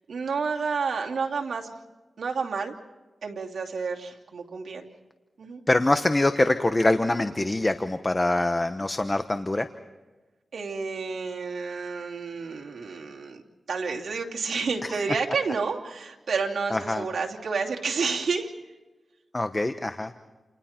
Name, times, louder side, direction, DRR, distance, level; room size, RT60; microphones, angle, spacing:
voice 1, 0.1-1.7 2.2-2.7 3.2-4.9 5.4-5.6 10.5-13.4 13.7-18.5, right 5 dB, 80° right, -1 dB, 2.8 m, -30 dB
voice 2, 5.7-9.7 16.7-17.0 19.3-20.1, left 2 dB, 20° left, 9 dB, 1.0 m, -24 dB
29.5 x 29.5 x 4.5 m, 1.2 s
wide cardioid pair, 95°, 0 cm